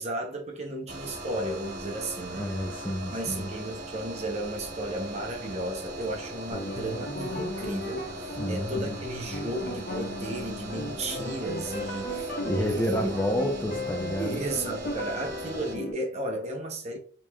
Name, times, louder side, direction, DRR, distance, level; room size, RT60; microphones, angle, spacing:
voice 1, 0.0-2.5 3.1-13.5 14.2-17.0, right 1 dB, 35° right, 0.7 m, -34 dB
sound 1, 0.9-15.8, right 1 dB, 55° right, 0.9 m, -40 dB
voice 2, 2.3-3.5 8.4-9.0 12.4-14.5, equal, 10° left, 0.5 m, -30 dB
sound 2, 6.5-15.9, left 1 dB, 50° left, 1.3 m, -36 dB
5.0 x 3.0 x 2.2 m
head